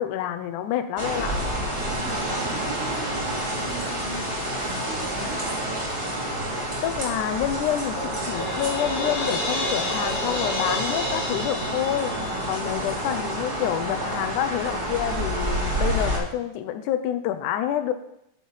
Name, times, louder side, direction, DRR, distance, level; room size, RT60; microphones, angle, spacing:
voice 1, 0.0-1.4 6.8-17.9, left 11 dB, 80° left, 9 dB, 1.8 m, -28 dB
sound 1, 1.0-16.2, right 1 dB, 20° right, 2.5 m, -29 dB
voice 2, 2.0-5.5, right 3 dB, 25° left, -10 dB, 4.2 m, -38 dB
Crash cymbal, 8.0-12.9, equal, 55° left, 5.4 m, -30 dB
9.3 x 5.5 x 5.6 m, 0.79 s
omnidirectional pair, 4.3 m